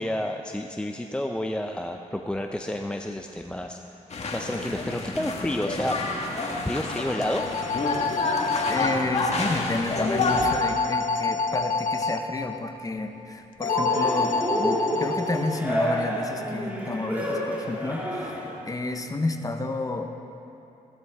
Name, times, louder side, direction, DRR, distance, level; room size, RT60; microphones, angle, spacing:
voice 1, 0.0-3.8 4.3-6.0 6.6-7.4, left 1 dB, 5° left, 4 dB, 0.6 m, -30 dB
sound 1, 4.1-10.5, left 2 dB, 50° left, 1.7 m, -29 dB
sound 2, 7.0-9.0 10.2-12.2 13.6-15.6, left 4 dB, 75° left, 1.0 m, -27 dB
voice 2, 8.7-18.4 18.7-20.1, left 2 dB, 25° left, 6 dB, 1.0 m, -30 dB
Cheering, 13.6-18.6, equal, 10° right, 2.9 m, -29 dB
15.0 x 12.5 x 3.6 m, 2.9 s
cardioid pair, 70°, 14 cm